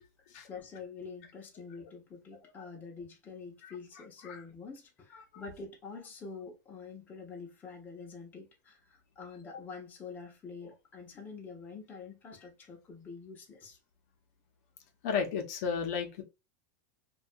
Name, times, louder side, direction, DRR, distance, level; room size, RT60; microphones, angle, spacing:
voice 1, 0.5-13.8, left 5 dB, 20° left, 0.6 m, -46 dB
voice 2, 15.0-16.2, left 6 dB, 60° left, 0.6 m, -33 dB
2.3 x 2.2 x 2.5 m
supercardioid pair, 150°, 9 cm